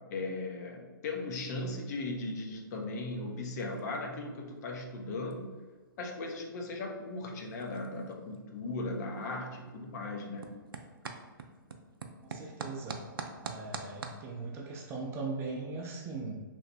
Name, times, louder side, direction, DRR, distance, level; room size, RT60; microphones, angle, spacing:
voice 1, 0.1-5.5 6.0-10.5, left 2 dB, 50° left, 1 dB, 0.6 m, -37 dB
sound 1, 1.5-14.2, right 4 dB, 85° right, 0.4 m, -48 dB
voice 2, 12.2-13.0 13.4-16.4, right 3 dB, 20° right, 0 dB, 0.5 m, -39 dB
3.1 x 2.1 x 4.0 m, 1.4 s
hypercardioid pair, 125°, 11 cm